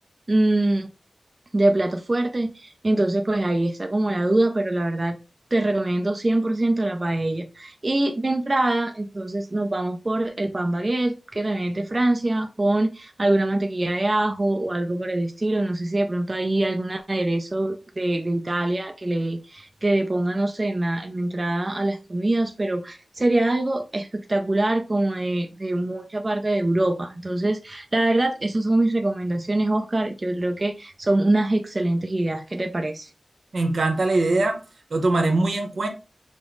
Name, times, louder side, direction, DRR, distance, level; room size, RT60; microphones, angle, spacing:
voice 1, 0.3-0.9 1.5-5.2 5.5-33.1, right 2 dB, 35° right, 0.4 m, -24 dB
voice 2, 33.5-34.6 34.9-35.9, right 2 dB, 80° right, 0.9 m, -22 dB
5.1 x 2.0 x 3.7 m
wide cardioid pair, 75°, 0 cm